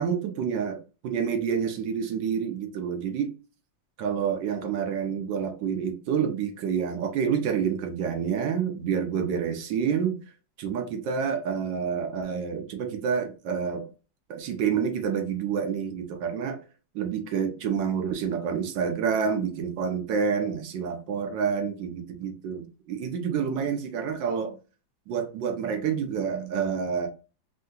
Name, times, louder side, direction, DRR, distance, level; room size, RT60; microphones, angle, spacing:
voice 1, 0.0-3.3 4.0-10.2 10.6-13.9 14.3-16.6 16.9-24.6 25.1-27.1, right 7 dB, 75° right, 1.2 m, -28 dB
3.5 x 2.7 x 2.3 m
omnidirectional pair, 2.2 m